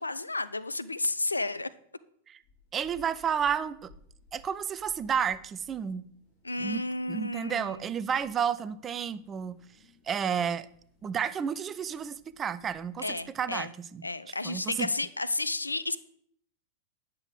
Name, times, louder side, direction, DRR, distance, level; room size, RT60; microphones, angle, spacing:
voice 1, 0.0-1.7 6.4-7.8 13.0-13.7 14.0-16.0, left 2 dB, 80° left, 15 dB, 0.3 m, -32 dB
sound 1, 2.4-13.5, left 3 dB, 45° left, 3.6 m, -61 dB
voice 2, 2.7-3.9 4.3-6.0 6.6-9.6 10.0-10.7 11.0-14.0 14.4-14.9, right 7 dB, 25° right, 16 dB, 0.3 m, -31 dB
8.8 x 6.7 x 3.5 m, 0.65 s
figure-of-eight pair, 90°, 0 cm